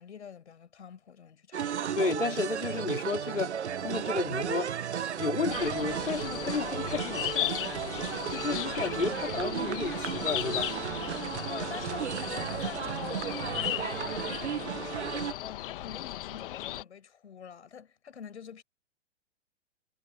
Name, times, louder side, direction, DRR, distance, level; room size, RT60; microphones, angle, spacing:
voice 1, 0.0-1.9 8.5-8.7 11.5-18.6, left 7 dB, 65° left, 5.7 m, -46 dB
sound 1, 1.5-15.3, right 8 dB, 70° right, 1.4 m, -34 dB
voice 2, 1.6-7.5 8.3-10.7, left 4 dB, 85° left, 3.2 m, -32 dB
sound 2, 5.5-16.8, left 14 dB, 45° left, 1.6 m, -37 dB
figure-of-eight pair, 115°, 36 cm